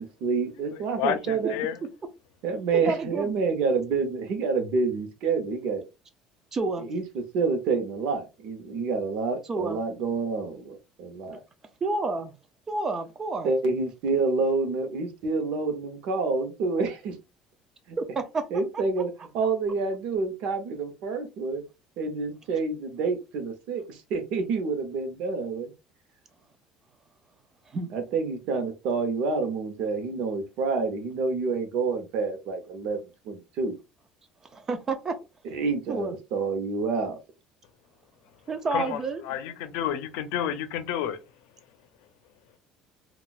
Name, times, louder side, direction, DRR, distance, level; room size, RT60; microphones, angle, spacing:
voice 1, 0.0-1.5 2.4-5.8 6.8-7.0 7.3-11.4 13.4-17.2 17.9-18.0 18.5-21.6 22.0-25.7 27.9-33.8 35.5-37.2, right 4 dB, 60° right, 0.8 m, -28 dB
voice 2, 0.7-1.8 38.7-41.2, left 9 dB, 85° left, 0.5 m, -30 dB
voice 3, 2.7-3.3 6.5-6.9 9.5-9.8 11.8-12.3 12.7-13.5 18.0-18.5 27.7-27.9 34.5-35.2 35.9-36.1 38.5-39.2, right 3 dB, 20° right, 0.5 m, -29 dB
3.9 x 2.3 x 2.4 m
cardioid pair, 170°, 2 cm